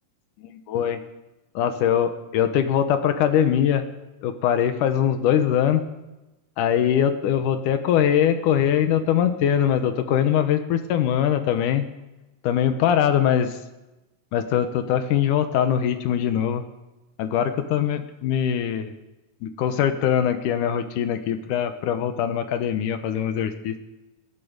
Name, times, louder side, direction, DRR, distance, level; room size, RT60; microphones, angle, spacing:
voice 1, 0.4-1.0 1.6-3.9 4.2-5.8 6.6-11.8 12.4-13.5 14.3-16.6 17.2-18.9 19.4-23.7, left 9 dB, 75° left, 9 dB, 2.3 m, -22 dB
18.5 x 11.5 x 5.2 m, 1.0 s
omnidirectional pair, 4.0 m